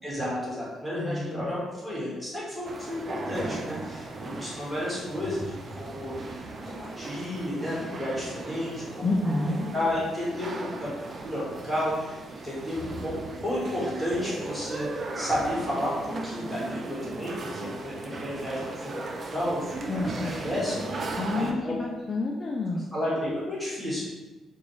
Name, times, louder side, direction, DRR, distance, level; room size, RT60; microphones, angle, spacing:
voice 1, 0.0-6.3 6.7-9.1 9.7-10.9 11.2-18.6 19.3-21.8 22.9-24.0, left 1 dB, ahead, -7 dB, 1.4 m, -32 dB
voice 2, 1.0-1.5 9.0-9.7 19.9-20.3 21.2-22.8, left 2 dB, 40° left, -1 dB, 0.4 m, -29 dB
sound 1, 2.6-21.5, right 2 dB, 40° right, 0.4 m, -37 dB
4.0 x 2.3 x 3.0 m, 1.1 s
cardioid pair, 90°, 0 cm